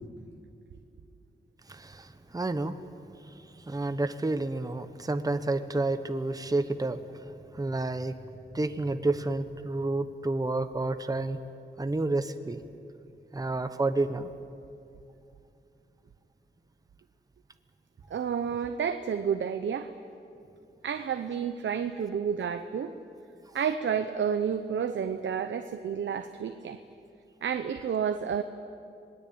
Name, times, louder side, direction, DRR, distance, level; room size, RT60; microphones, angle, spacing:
voice 1, 1.7-2.8 3.2-3.3 3.7-7.0 7.5-8.2 8.5-11.4 11.8-12.6 13.3-14.3, right 2 dB, 20° right, 10 dB, 1.1 m, -30 dB
voice 2, 18.1-19.9 20.8-22.9 23.5-26.8 27.4-28.4, right 7 dB, 85° right, 8 dB, 0.9 m, -30 dB
27.0 x 20.5 x 8.7 m, 2.6 s
wide cardioid pair, 90°, 19 cm